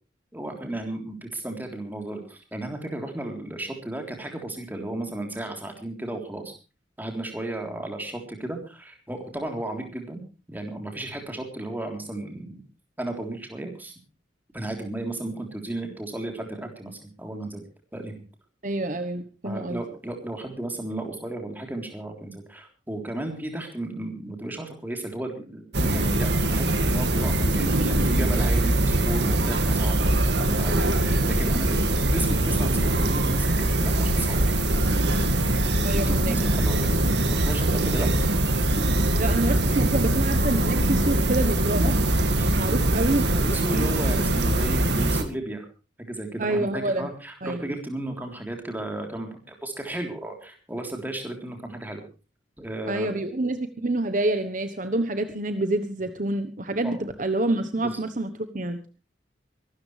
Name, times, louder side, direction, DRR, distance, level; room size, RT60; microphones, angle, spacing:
voice 1, 0.3-6.5 7.0-10.2 10.5-12.6 13.0-13.9 14.5-17.6 17.9-18.1 19.4-30.0 30.4-34.4 35.7-36.9 37.3-38.1 42.4-42.6 43.0-45.7 46.0-52.0 52.6-53.1 56.8-57.0 57.8-58.0, right 1 dB, 10° right, 3 dB, 3.6 m, -34 dB
voice 2, 18.6-19.8 35.8-36.3 38.0-38.1 39.2-42.1 42.6-44.0 46.4-47.1 47.4-47.6 52.9-58.8, right 2 dB, 45° right, 9 dB, 1.1 m, -27 dB
sound 1, 25.7-45.2, right 1 dB, 65° right, 2.1 m, -22 dB
24.0 x 13.0 x 3.3 m, 0.33 s
head